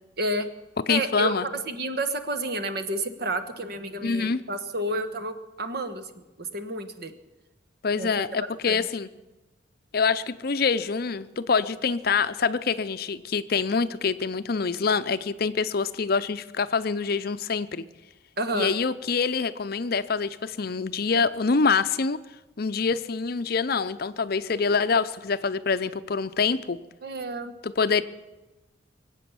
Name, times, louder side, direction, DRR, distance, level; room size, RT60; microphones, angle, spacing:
voice 1, 0.2-0.5 0.9-6.1 6.4-7.1 8.0-8.1 8.6-8.8 18.4-18.7 27.0-27.5, right 1 dB, 55° right, 9 dB, 1.2 m, -30 dB
voice 2, 0.9-1.4 4.0-4.4 7.8-9.1 9.9-17.8 18.5-22.2 22.6-26.8 27.6-28.0, left 5 dB, 50° left, 12 dB, 0.6 m, -25 dB
23.5 x 8.3 x 7.1 m, 1.1 s
head